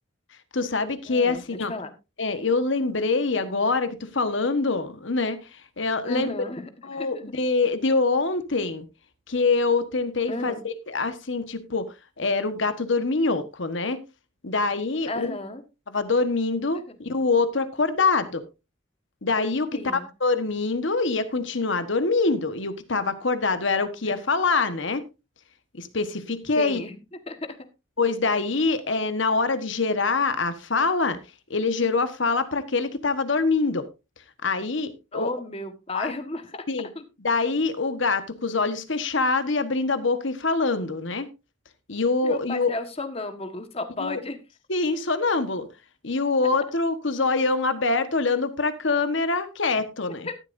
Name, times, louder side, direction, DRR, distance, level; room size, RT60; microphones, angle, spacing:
voice 1, 0.5-1.7 2.2-6.3 6.8-8.8 9.3-14.0 14.4-15.4 15.9-18.4 19.2-25.0 25.7-26.8 28.0-31.2 31.5-33.8 34.4-35.3 35.9-36.1 36.7-36.9 37.2-41.3 41.9-42.7 44.0-44.2 44.7-45.7 46.0-50.3, left 3 dB, 70° left, 11 dB, 1.4 m, -25 dB
voice 2, 1.1-1.9 6.0-7.2 10.3-10.6 15.1-15.6 16.9-17.0 19.7-20.1 24.0-24.1 26.6-27.0 27.3-27.5 35.1-36.6 36.9-37.0 42.2-44.4 50.2-50.3, left 2 dB, 30° left, 8 dB, 1.5 m, -34 dB
13.5 x 12.0 x 2.7 m, 0.27 s
head